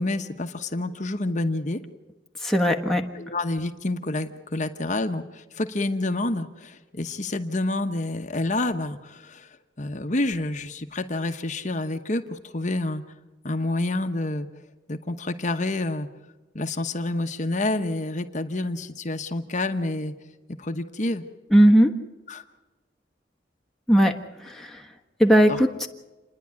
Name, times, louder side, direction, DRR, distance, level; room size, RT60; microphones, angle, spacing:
voice 1, 0.0-1.8 3.1-9.5 9.8-13.0 13.4-14.5 14.9-16.1 16.5-20.1 20.6-21.2 22.3-22.4 25.5-25.6, left 2 dB, 40° left, 6 dB, 1.1 m, -28 dB
voice 2, 2.4-3.0 21.5-21.9 23.9-24.2 25.2-25.9, equal, ahead, 1 dB, 1.4 m, -17 dB
29.0 x 10.5 x 9.7 m, 1.1 s
head